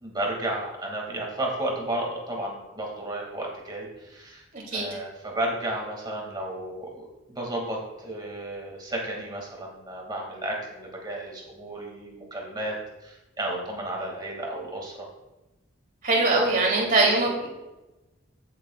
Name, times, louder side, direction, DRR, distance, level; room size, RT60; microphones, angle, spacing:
voice 1, 0.0-4.4 4.7-15.1 16.4-17.2, right 1 dB, 20° right, -1 dB, 2.0 m, -33 dB
voice 2, 16.0-17.5, right 2 dB, 40° right, -2 dB, 2.7 m, -22 dB
15.5 x 7.5 x 2.3 m, 1.0 s
head